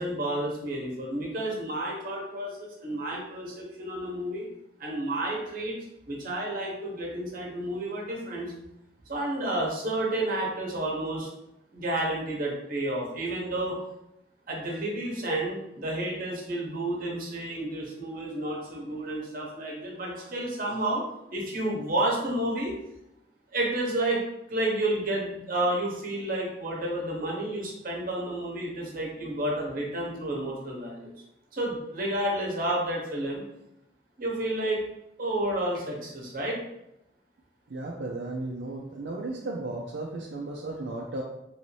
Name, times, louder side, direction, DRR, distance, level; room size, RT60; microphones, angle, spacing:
voice 1, 0.0-4.5 4.8-5.8 6.1-8.5 9.1-11.3 11.7-13.8 14.5-21.0 21.3-22.7 23.5-24.2 24.5-31.1 31.5-33.4 34.2-34.8 35.2-36.6, right 1 dB, 55° right, -2 dB, 1.0 m, -30 dB
voice 2, 37.7-41.2, right 2 dB, 80° right, -1 dB, 0.4 m, -35 dB
3.1 x 2.7 x 3.1 m, 0.87 s
head